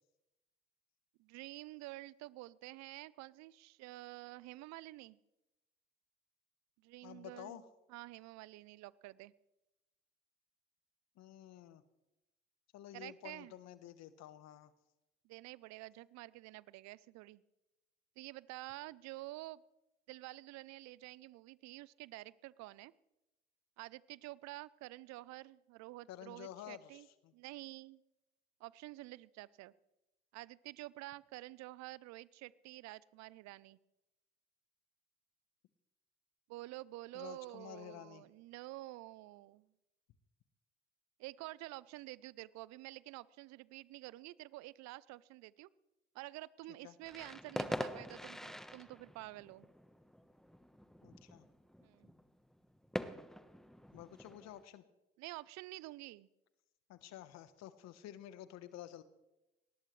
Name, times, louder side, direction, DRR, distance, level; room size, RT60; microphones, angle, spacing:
voice 1, 1.2-5.2 6.8-7.6 7.9-9.3 12.9-13.5 15.2-17.4 18.2-19.6 20.1-22.9 23.8-27.1 27.3-28.0 28.6-29.7 30.3-33.8 36.5-39.7 41.2-45.7 46.1-49.7 51.8-52.1 55.2-56.3, right 19 dB, 65° right, 21 dB, 0.6 m, -49 dB
voice 2, 7.0-7.7 11.1-11.8 12.7-14.7 26.1-27.3 37.1-38.2 46.7-47.0 51.0-51.5 53.9-54.8 56.9-59.0, left 12 dB, 65° left, 13 dB, 1.2 m, -51 dB
sound 1, 47.0-54.6, equal, ahead, 1.2 m, -45 dB
22.0 x 19.0 x 3.3 m, 0.97 s
hypercardioid pair, 50°, 29 cm